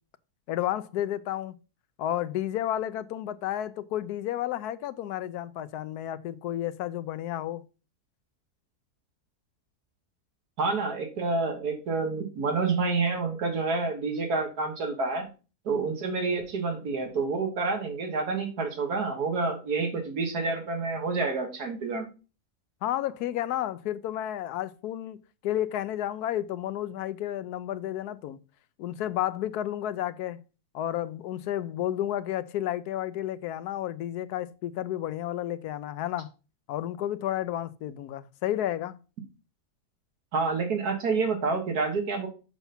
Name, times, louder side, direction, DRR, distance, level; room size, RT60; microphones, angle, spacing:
voice 1, 0.5-1.5 2.0-7.6 22.8-25.2 25.4-28.4 28.8-30.4 30.7-36.3 36.7-39.0, left 12 dB, 80° left, 1.1 m, -31 dB
voice 2, 10.6-15.3 15.7-22.1 40.3-42.3, right 4 dB, 75° right, 2.0 m, -28 dB
7.0 x 5.6 x 4.2 m
omnidirectional pair, 1.6 m